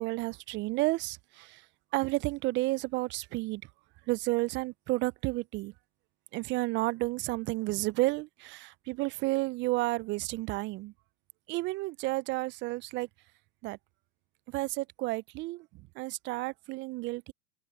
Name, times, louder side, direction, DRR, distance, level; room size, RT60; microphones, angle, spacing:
voice 1, 0.0-1.7 1.9-3.6 4.1-5.7 6.3-10.9 11.5-13.1 13.6-13.8 14.5-17.3, right 21 dB, 25° right, 0.4 m, -31 dB
hypercardioid pair, 100°, 44 cm